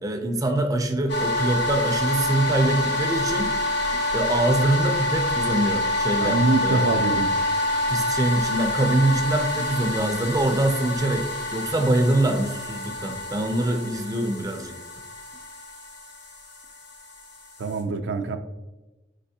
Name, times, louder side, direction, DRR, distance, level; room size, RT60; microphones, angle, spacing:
voice 1, 0.0-3.5 4.1-6.9 7.9-14.8, right 1 dB, 20° right, 5 dB, 0.4 m, -24 dB
sound 1, 1.1-17.8, left 1 dB, 70° left, 1.0 m, -27 dB
voice 2, 6.2-7.3 17.6-18.4, right 3 dB, 75° right, 6 dB, 0.4 m, -24 dB
5.3 x 3.3 x 2.7 m, 1.1 s
head